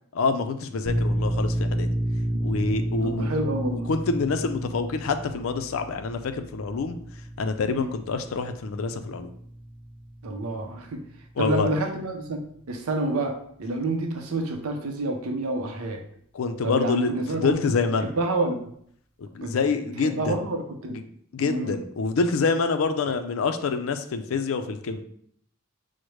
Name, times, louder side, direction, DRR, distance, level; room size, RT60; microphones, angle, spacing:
voice 1, 0.1-1.9 2.4-3.3 3.7-7.0 7.4-9.3 11.4-11.7 16.3-18.1 19.2-20.4 20.9-21.0 21.3-25.0, left 4 dB, 75° left, 8 dB, 0.4 m, -26 dB
sound 1, 0.9-12.2, right 1 dB, 5° left, 0.4 m, -31 dB
voice 2, 3.0-3.9 7.7-7.9 10.2-11.0 11.4-12.4 12.7-13.3 13.6-16.0 16.6-17.6 18.2-18.7 19.4-19.5 20.0-21.0 21.4-21.8, right 2 dB, 90° right, 3 dB, 0.6 m, -28 dB
6.2 x 2.1 x 3.0 m, 0.65 s
head